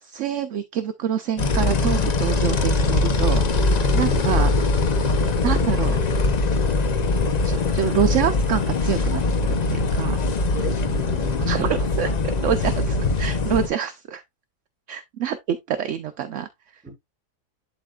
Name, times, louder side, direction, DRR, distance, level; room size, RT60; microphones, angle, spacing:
voice 1, 0.0-3.4 3.9-4.5 5.4-6.0 7.4-9.2 9.7-10.2 11.5-12.1 12.4-14.2 14.9-16.8, right 9 dB, 65° right, 0.8 m, -26 dB
sound 1, 1.4-13.7, left 3 dB, 55° left, 0.4 m, -22 dB
voice 2, 10.5-11.7 16.8-16.9, equal, 5° right, 5.0 m, -35 dB
11.0 x 4.0 x 2.4 m
omnidirectional pair, 1.8 m